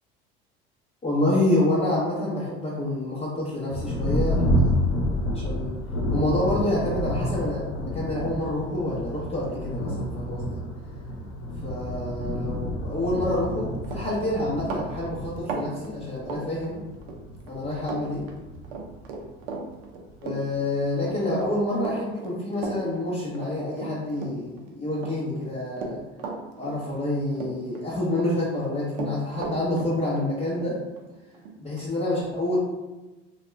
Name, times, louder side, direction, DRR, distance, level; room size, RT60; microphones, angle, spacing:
voice 1, 1.0-4.6 5.3-5.8 6.1-10.5 11.6-16.8 17.5-18.2 20.2-26.0 26.6-30.8 31.6-32.6, left 1 dB, 20° left, -8 dB, 0.9 m, -27 dB
Thunder, 3.7-19.7 20.5-20.6 21.1-21.6, equal, 80° left, 0.9 m, -29 dB
Run, 13.5-13.6 13.8-17.2 17.5-18.0 18.3-24.6 25.0-27.1 27.4-28.3 28.5-31.9, right 4 dB, 80° right, 0.6 m, -36 dB
2.8 x 2.3 x 3.2 m, 1.1 s
hypercardioid pair, 70°, 30 cm